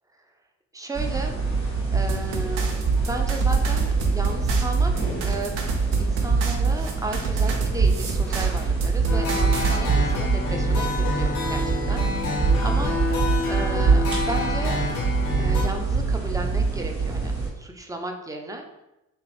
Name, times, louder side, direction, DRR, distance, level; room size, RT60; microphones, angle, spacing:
voice 1, 0.7-4.9 5.2-5.6 6.0-13.0 13.5-14.8 15.4-17.3 17.6-18.7, right 2 dB, 10° right, 3 dB, 0.4 m, -34 dB
sound 1, 0.9-17.5, right 4 dB, 60° right, 1.4 m, -24 dB
sound 2, 2.1-9.8, right 4 dB, 80° right, 0.5 m, -33 dB
sound 3, 9.1-15.6, left 3 dB, 90° left, 0.6 m, -28 dB
2.9 x 2.0 x 3.0 m, 0.93 s
hypercardioid pair, 45°, 39 cm